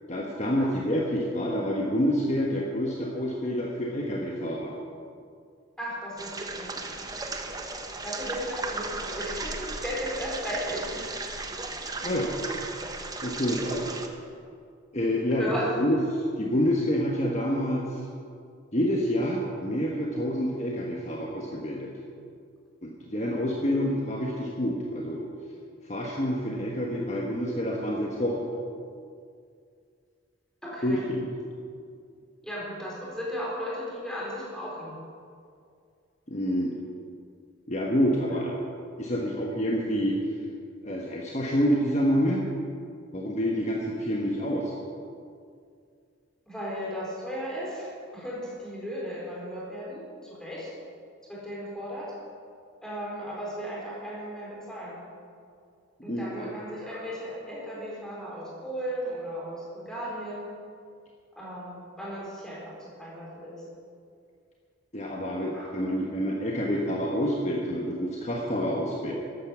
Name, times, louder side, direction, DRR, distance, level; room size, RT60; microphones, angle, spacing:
voice 1, 0.1-4.7 12.0-12.3 13.2-14.0 14.9-15.5 15.8-18.0 18.7-21.9 22.8-25.2 25.8-28.5 30.8-31.3 36.3-36.7 37.7-38.6 39.0-40.2 40.8-42.4 43.1-44.7 56.0-56.5 64.9-69.1, equal, 35° left, -2 dB, 1.4 m, -27 dB
voice 2, 5.8-6.8 8.0-11.3 12.7-12.8 15.3-15.9 30.6-31.1 32.4-35.0 46.5-50.7 51.3-52.1 52.8-55.0 56.0-60.5 61.4-63.7 65.5-66.1, equal, 5° left, -6 dB, 4.3 m, -36 dB
sound 1, 6.2-14.1, right 3 dB, 20° right, 0.9 m, -35 dB
13.5 x 11.5 x 7.1 m, 2.3 s
head